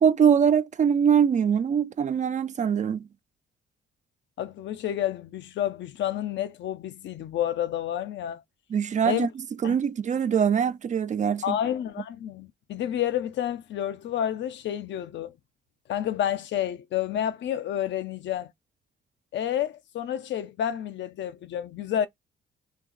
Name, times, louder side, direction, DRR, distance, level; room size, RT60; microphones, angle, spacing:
voice 1, 0.0-3.1 8.7-9.3 9.6-11.6, right 7 dB, 40° right, 0.4 m, -23 dB
voice 2, 4.4-8.4 9.1-9.3 9.6-9.8 11.4-15.3 15.9-18.5 19.3-22.1, left 10 dB, 65° left, 0.5 m, -29 dB
2.7 x 2.3 x 3.8 m
cardioid pair, 90°, 20 cm